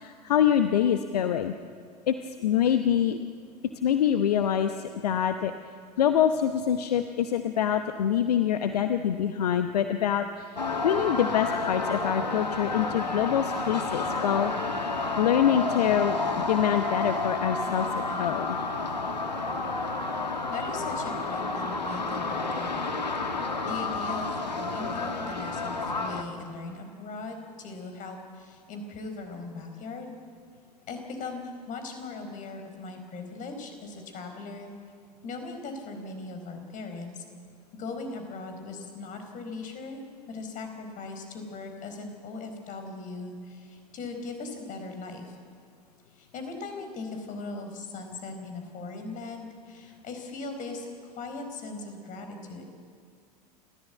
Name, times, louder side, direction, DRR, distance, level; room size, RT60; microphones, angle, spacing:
voice 1, 0.0-1.5 2.1-3.2 3.8-5.5 6.0-10.6 10.8-14.5 15.2-18.6, left 9 dB, 70° left, 9 dB, 0.9 m, -25 dB
sound 1, 10.6-26.2, left 3 dB, 85° left, 1.8 m, -30 dB
voice 2, 20.5-22.9 23.4-30.2 30.9-34.7 35.2-37.2 37.7-45.4 46.2-52.6, left 3 dB, 40° left, 5 dB, 4.6 m, -39 dB
29.0 x 14.0 x 8.2 m, 2.1 s
figure-of-eight pair, 80°, 21 cm